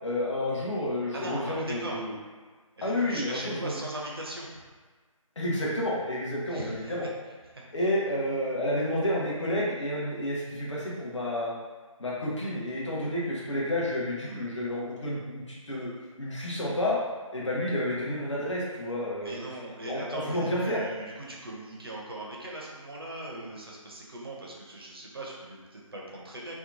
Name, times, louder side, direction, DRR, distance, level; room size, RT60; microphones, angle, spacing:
voice 1, 0.0-2.1 2.8-3.8 5.4-7.1 7.7-11.5 12.0-15.9 16.2-17.0 17.3-19.4 19.8-20.8, left 1 dB, 60° left, -5 dB, 0.8 m, -30 dB
voice 2, 1.1-2.0 2.8-4.6 6.4-6.9 7.5-7.6 14.2-14.4 19.2-26.6, right 1 dB, 45° right, -3 dB, 0.5 m, -39 dB
2.8 x 2.2 x 2.5 m, 1.4 s
figure-of-eight pair, 160°, 18 cm